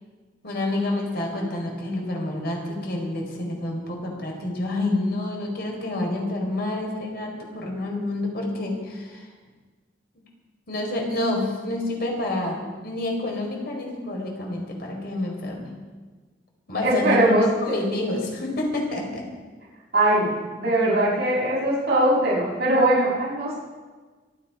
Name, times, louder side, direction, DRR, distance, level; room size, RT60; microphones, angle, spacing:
voice 1, 0.4-9.3 10.7-15.7 16.7-19.2, left 2 dB, 60° left, 0 dB, 4.6 m, -28 dB
voice 2, 16.8-17.8 19.9-20.3 20.6-23.5, right 1 dB, 60° right, -7 dB, 6.9 m, -21 dB
26.5 x 9.2 x 5.1 m, 1.4 s
head